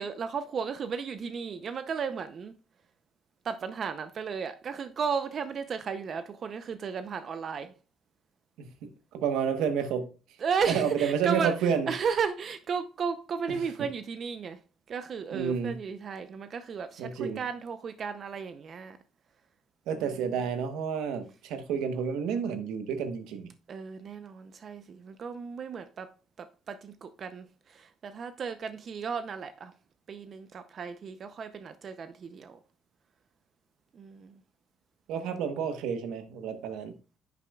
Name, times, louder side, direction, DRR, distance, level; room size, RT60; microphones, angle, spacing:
voice 1, 0.0-2.5 3.4-7.7 10.4-14.6 14.9-19.0 19.9-20.2 23.7-26.1 26.4-29.7 30.1-32.6 33.9-34.4, right 6 dB, 50° right, 0.6 m, -34 dB
voice 2, 8.6-10.1 10.7-11.9 13.5-13.6 15.3-15.8 17.0-17.4 19.9-23.5 35.1-36.9, right 7 dB, 90° right, 1.0 m, -30 dB
9.9 x 6.8 x 2.3 m
cardioid pair, 100°, 0 cm